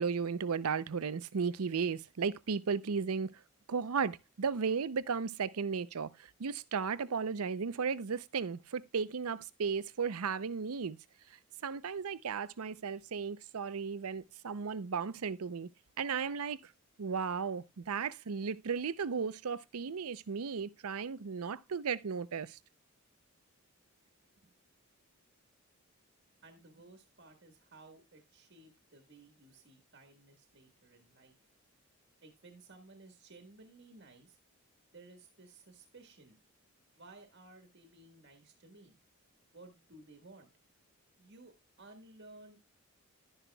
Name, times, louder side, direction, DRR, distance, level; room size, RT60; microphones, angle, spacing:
voice 1, 0.0-3.3 3.7-11.0 11.6-15.7 16.0-16.6 17.0-22.6, right 5 dB, 90° right, 0.6 m, -35 dB
voice 2, 26.4-31.3 32.2-34.4 34.9-36.4 36.9-39.0 39.5-40.5 41.2-42.6, right 2 dB, 55° right, 1.5 m, -57 dB
12.0 x 10.0 x 2.3 m
head